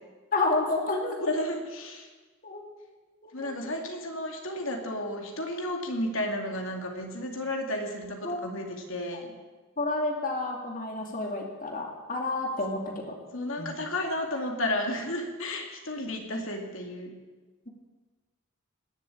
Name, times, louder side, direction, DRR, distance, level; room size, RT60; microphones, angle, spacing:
voice 1, 0.3-1.2 2.4-2.6 3.2-3.5 8.2-8.4 9.8-13.2 13.6-13.7, left 2 dB, 40° left, 1 dB, 2.4 m, -30 dB
voice 2, 1.2-2.1 3.3-9.3 13.3-17.2, left 1 dB, 70° left, 2 dB, 2.4 m, -32 dB
19.0 x 7.3 x 8.6 m, 1.3 s
head